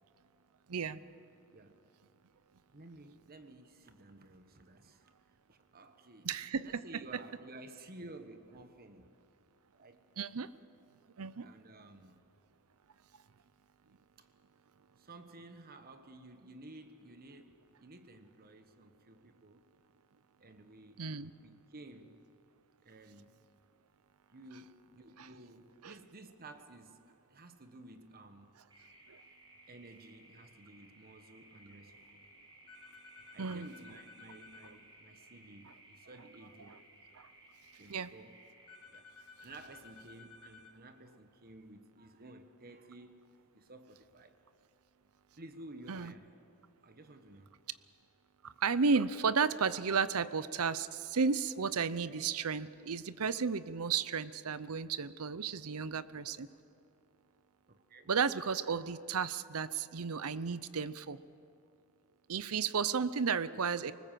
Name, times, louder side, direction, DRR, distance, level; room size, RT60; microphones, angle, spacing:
voice 1, 0.7-1.0 6.2-6.8 10.2-10.5 11.2-11.5 21.0-21.3 25.8-25.9 29.1-29.2 33.4-33.7 37.2-37.3 37.9-38.1 45.9-46.1 48.4-56.5 58.1-61.2 62.3-63.9, right 5 dB, 75° right, 0.7 m, -33 dB
voice 2, 2.7-5.1 5.5-6.3 6.6-9.1 9.7-10.0 11.4-12.2 14.2-14.3 15.0-19.6 20.4-21.1 21.4-22.2 22.8-23.3 24.3-28.5 29.7-32.2 33.2-36.8 37.7-38.4 38.9-39.1 39.4-44.4 45.4-46.3 46.8-47.5 57.7-58.1, right 2 dB, 45° right, 1.3 m, -54 dB
sound 1, 28.7-38.8, right 1 dB, 20° right, 4.5 m, -60 dB
sound 2, 32.7-34.7 38.7-40.7, left 5 dB, 85° left, 2.2 m, -56 dB
25.0 x 20.0 x 7.6 m
head